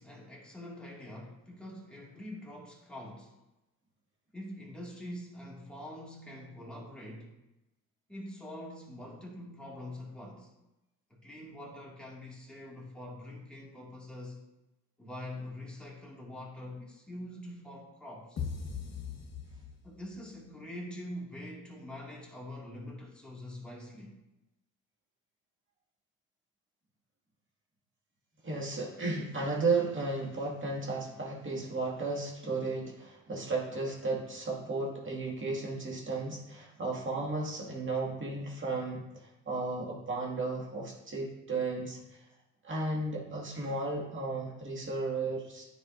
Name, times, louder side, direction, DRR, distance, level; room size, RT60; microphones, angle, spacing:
voice 1, 0.0-3.4 4.3-7.4 8.1-10.6 11.1-14.4 15.0-18.4 19.8-24.2, left 1 dB, 5° left, -4 dB, 2.1 m, -44 dB
sound 1, 18.4-20.2, left 6 dB, 50° left, 1.5 m, -39 dB
voice 2, 28.4-39.0 39.5-42.0 42.6-45.7, right 3 dB, 35° right, -3 dB, 2.1 m, -34 dB
9.7 x 4.9 x 2.6 m, 0.96 s
cardioid pair, 90°, 34 cm